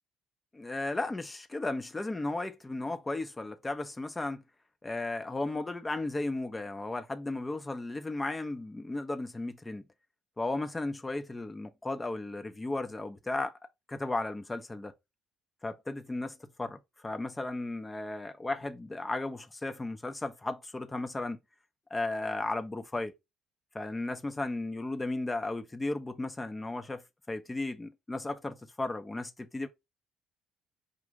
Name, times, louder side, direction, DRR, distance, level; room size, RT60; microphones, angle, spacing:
voice 1, 0.5-4.4 4.8-9.8 10.4-13.5 13.9-14.9 15.6-21.4 21.9-23.1 23.7-29.7, left 2 dB, 20° left, 0.8 m, -35 dB
5.2 x 2.4 x 3.8 m
figure-of-eight pair, 50°, 0 cm